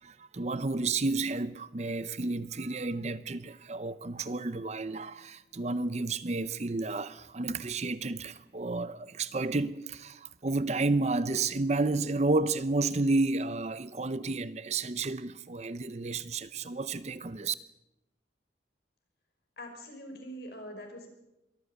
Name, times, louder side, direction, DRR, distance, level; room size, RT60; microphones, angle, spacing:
voice 1, 0.0-17.5, right 3 dB, 35° right, 0.7 m, -31 dB
voice 2, 19.6-21.1, equal, 60° left, 5.5 m, -43 dB
23.0 x 14.0 x 8.1 m
head